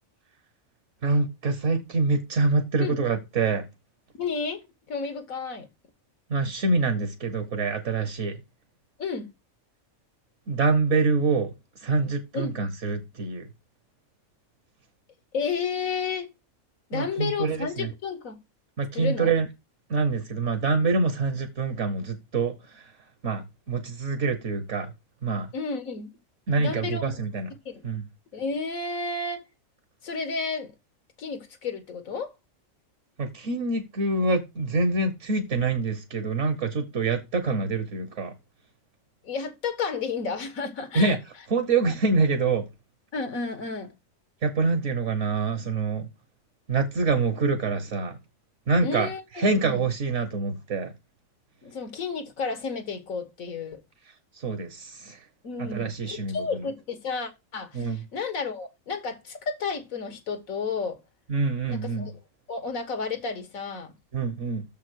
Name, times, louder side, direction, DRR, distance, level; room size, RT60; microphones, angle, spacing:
voice 1, 1.0-3.7 6.3-8.3 10.5-11.5 11.8-13.5 16.9-17.9 18.8-19.5 19.9-22.8 23.2-24.9 25.2-25.5 26.5-27.5 27.8-28.0 33.2-38.3 40.9-41.2 41.5-42.6 44.4-46.1 46.7-48.2 48.7-49.1 49.4-50.9 54.4-55.2 55.6-56.4 57.7-58.0 61.3-62.1 64.1-64.6, right 3 dB, 65° right, 1.4 m, -25 dB
voice 2, 4.1-5.7 9.0-9.3 12.3-12.6 15.3-16.3 16.9-18.4 18.9-19.3 25.5-26.1 26.6-27.1 27.7-27.9 28.3-29.5 30.0-30.7 31.2-32.3 39.2-41.2 41.8-42.0 43.1-43.9 48.8-49.9 51.6-53.8 55.4-61.0 61.7-62.2 62.5-63.9, left 5 dB, 85° left, 1.8 m, -32 dB
6.7 x 5.6 x 6.3 m
omnidirectional pair, 1.4 m